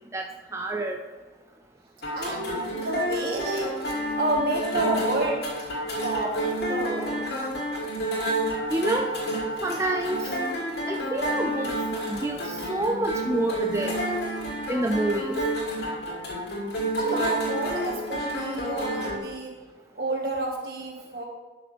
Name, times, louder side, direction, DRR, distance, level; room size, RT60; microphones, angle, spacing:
voice 1, 0.5-1.0 8.7-9.1 9.6-10.3 10.9-11.7 12.1-14.0 14.7-15.4, right 1 dB, 15° right, 3 dB, 0.4 m, -27 dB
sound 1, 2.0-19.2, right 1 dB, 80° left, 2.6 m, -30 dB
voice 2, 2.1-5.4 6.0-7.2 17.0-19.5 20.0-21.2, right 1 dB, 60° right, 0 dB, 1.8 m, -30 dB
12.5 x 6.0 x 3.5 m, 1.4 s
head